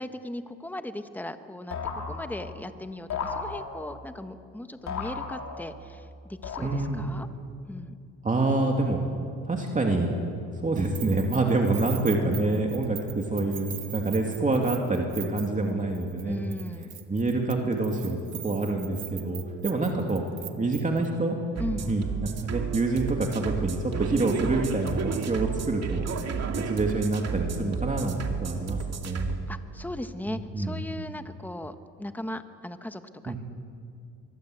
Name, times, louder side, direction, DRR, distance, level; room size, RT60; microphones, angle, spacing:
voice 1, 0.0-7.3 7.7-7.9 16.2-16.9 21.6-21.9 29.5-33.3, left 1 dB, 5° left, 9 dB, 1.3 m, -38 dB
sound 1, 1.7-2.7 3.1-4.0 4.9-5.9 6.4-7.1, left 5 dB, 65° left, 4.0 m, -35 dB
voice 2, 6.6-7.1 8.2-9.0 9.4-10.1 10.6-16.5 17.1-18.2 18.4-20.2 20.6-21.4 21.7-26.1 26.5-28.8 29.0-29.4 30.3-30.8 33.3-33.4, right 2 dB, 25° right, 1 dB, 2.8 m, -27 dB
Keys jangling, 10.8-15.7 15.9-16.2 16.5-21.1, right 13 dB, 85° right, 1.7 m, -41 dB
sound 2, 21.6-29.4, right 6 dB, 55° right, 2.5 m, -32 dB
24.0 x 22.0 x 8.1 m, 2.4 s
cardioid pair, 90°, 30 cm